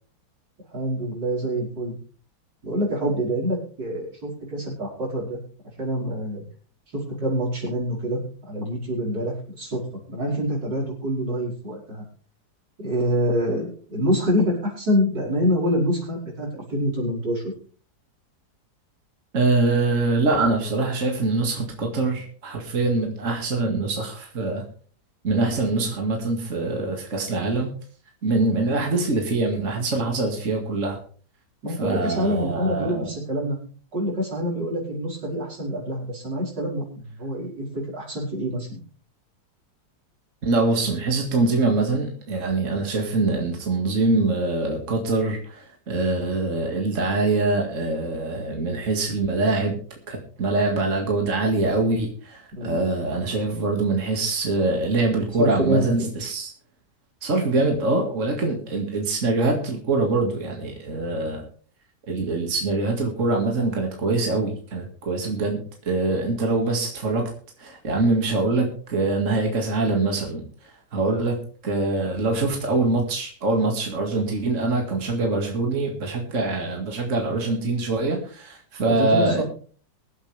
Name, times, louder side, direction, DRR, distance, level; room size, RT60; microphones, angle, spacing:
voice 1, 0.7-1.9 2.6-5.4 5.8-6.4 6.9-8.2 8.5-9.8 10.1-12.1 12.8-17.5 31.6-33.6 33.9-38.8 52.6-52.8 55.4-55.9 78.9-79.4, equal, 90° right, -3 dB, 5.6 m, -26 dB
voice 2, 19.3-24.6 25.2-27.7 28.2-31.0 31.8-33.1 40.4-49.8 50.1-56.5 57.2-61.4 62.1-67.3 67.6-71.4 71.6-79.4, right 3 dB, 45° right, 1 dB, 2.4 m, -24 dB
23.5 x 8.2 x 3.4 m, 0.43 s
omnidirectional pair, 1.8 m